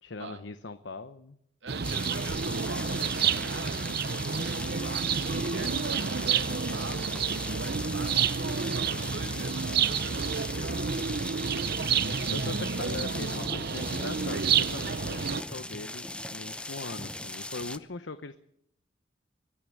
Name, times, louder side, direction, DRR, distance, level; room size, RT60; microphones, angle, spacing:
voice 1, 0.0-1.4 7.8-8.2 11.9-18.4, left 3 dB, 80° left, 11 dB, 0.9 m, -41 dB
voice 2, 1.6-10.9, right 4 dB, 80° right, 6 dB, 2.0 m, -44 dB
sound 1, 1.7-15.4, right 6 dB, 60° right, 0.8 m, -29 dB
sound 2, 1.8-17.8, left 2 dB, 5° left, 0.8 m, -39 dB
23.5 x 12.5 x 9.5 m, 0.76 s
head